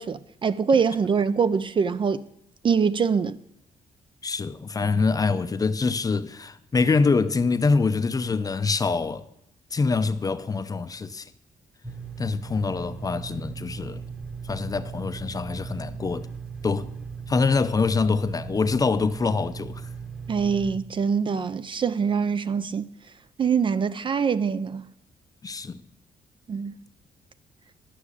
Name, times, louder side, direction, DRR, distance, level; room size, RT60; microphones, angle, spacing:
voice 1, 0.0-2.2 2.6-3.4 20.3-22.8 23.4-24.8 26.5-26.7, right 6 dB, 35° right, 0.4 m, -24 dB
voice 2, 4.2-9.2 9.7-11.3 12.2-14.0 14.4-16.3 16.6-17.0 17.3-19.9 25.4-25.8, left 4 dB, 25° left, 0.5 m, -25 dB
sound 1, 11.8-20.8, right 5 dB, 5° right, 0.9 m, -38 dB
11.5 x 6.1 x 8.2 m
cardioid pair, 145°, 15 cm